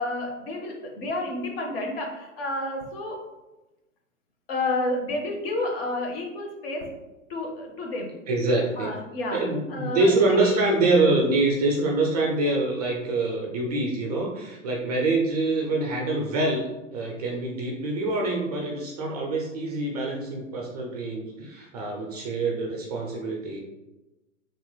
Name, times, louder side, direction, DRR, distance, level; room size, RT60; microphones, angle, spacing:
voice 1, 0.0-3.2 4.5-6.9 7.3-8.1 8.8-9.4 9.7-10.6, left 2 dB, 50° left, 1 dB, 0.8 m, -30 dB
voice 2, 8.3-8.9 9.3-23.6, right 2 dB, 35° right, 0 dB, 0.4 m, -25 dB
3.0 x 2.9 x 2.2 m, 1.0 s
hypercardioid pair, 115°, 39 cm